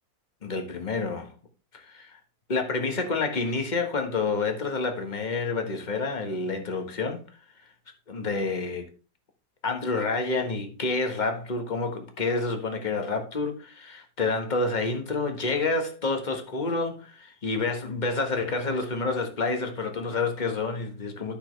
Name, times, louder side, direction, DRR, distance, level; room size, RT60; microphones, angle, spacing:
voice 1, 0.4-1.3 1.7-2.2 2.5-7.2 8.1-8.9 9.6-21.4, left 3 dB, 30° left, 1.4 m, -28 dB
12.0 x 6.2 x 3.2 m
omnidirectional pair, 1.7 m